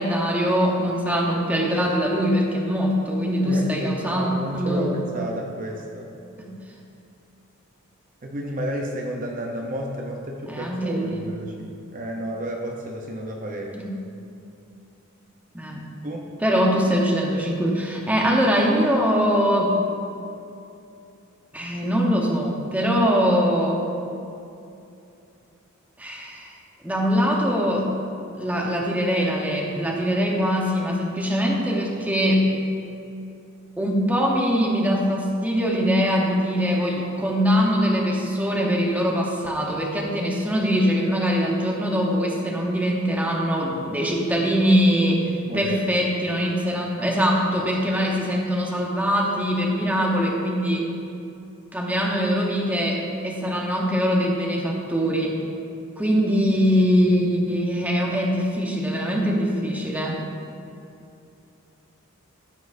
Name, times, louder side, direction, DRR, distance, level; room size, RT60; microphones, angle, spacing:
voice 1, 0.0-4.9 6.4-6.5 10.5-11.2 13.7-13.9 15.5-15.9 16.4-19.8 21.5-23.8 26.0-26.5 26.8-27.9 28.4-32.5 33.8-50.9 51.7-55.4 56.0-60.2, equal, 5° right, -2 dB, 1.0 m, -22 dB
voice 2, 3.4-6.1 8.2-13.8 16.0-16.3 45.5-46.1, equal, 40° right, 0 dB, 0.7 m, -31 dB
14.5 x 6.1 x 2.6 m, 2.7 s
head